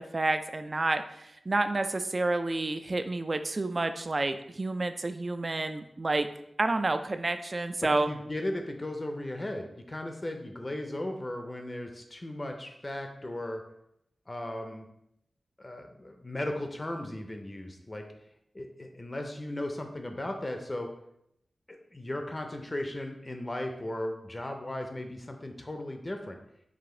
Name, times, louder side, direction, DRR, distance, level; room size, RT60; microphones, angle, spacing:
voice 1, 0.0-6.3 6.6-8.1, right 2 dB, 40° right, 9 dB, 0.3 m, -29 dB
voice 2, 7.8-13.6 14.3-14.9 15.6-18.1 18.5-20.9 21.7-26.4, left 1 dB, 30° left, 4 dB, 0.5 m, -36 dB
4.9 x 2.5 x 3.7 m, 0.77 s
wide cardioid pair, 90°, 0 cm